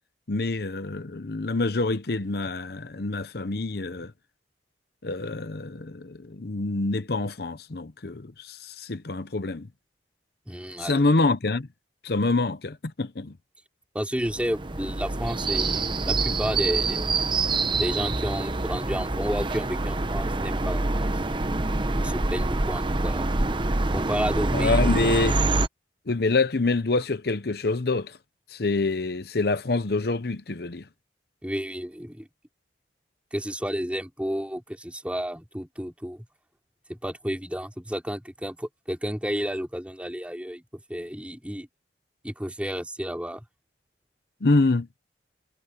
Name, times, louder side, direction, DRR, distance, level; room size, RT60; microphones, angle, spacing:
voice 1, 0.3-4.1 5.0-9.7 10.8-11.7 12.0-13.4 24.5-25.4 26.1-28.2 28.5-30.9 44.4-44.9, left 3 dB, 60° left, 0.8 m, -26 dB
voice 2, 10.5-11.0 13.9-17.2 17.8-21.1 22.0-23.3 23.9-25.0 31.4-32.3 33.3-36.2 36.9-41.7 42.2-43.4, equal, 5° right, 4.3 m, -31 dB
sound 1, 14.2-25.7, right 2 dB, 25° right, 0.9 m, -26 dB
head